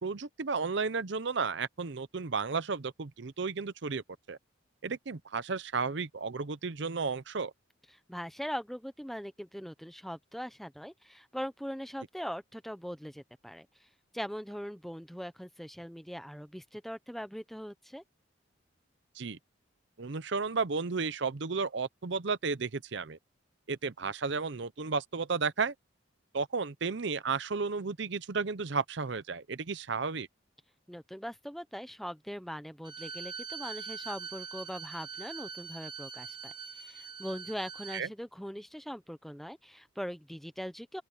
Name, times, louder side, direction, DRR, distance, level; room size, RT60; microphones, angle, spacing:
voice 1, 0.0-4.4 4.8-7.5 19.1-19.4 20.0-23.2 23.7-25.7 26.3-30.3 37.9-38.1, right 4 dB, 60° right, 0.7 m, -33 dB
voice 2, 8.1-13.9 14.1-18.0 30.9-41.0, equal, ahead, 0.8 m, -41 dB
Bowed string instrument, 32.8-38.1, right 5 dB, 20° right, 1.1 m, -43 dB
open air
head